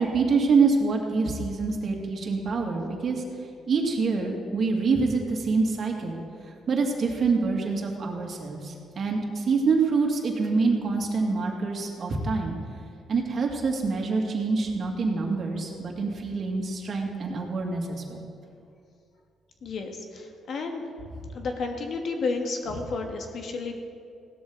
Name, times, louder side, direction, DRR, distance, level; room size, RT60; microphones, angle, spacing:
voice 1, 0.0-3.2 3.7-6.2 6.7-12.5 13.1-18.3, right 4 dB, 50° right, 1 dB, 2.2 m, -26 dB
voice 2, 19.6-20.8 21.3-23.8, left 3 dB, 60° left, 4 dB, 1.6 m, -31 dB
16.5 x 12.5 x 3.9 m, 2.4 s
cardioid pair, 90°, 0 cm